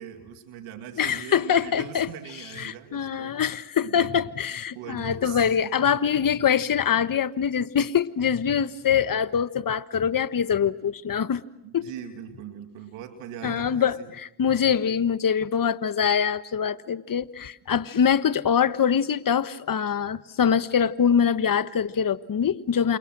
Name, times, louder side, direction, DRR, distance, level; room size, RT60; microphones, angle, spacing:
voice 1, 0.0-3.4 3.8-4.2 4.5-5.7 6.0-6.1 8.5-8.6 11.6-14.1, right 9 dB, 90° right, 2.4 m, -41 dB
voice 2, 1.0-2.1 2.6-11.4 11.7-11.9 13.4-14.0 14.4-23.0, left 7 dB, 45° left, 1.4 m, -24 dB
29.5 x 28.0 x 6.2 m
supercardioid pair, 60°, 48 cm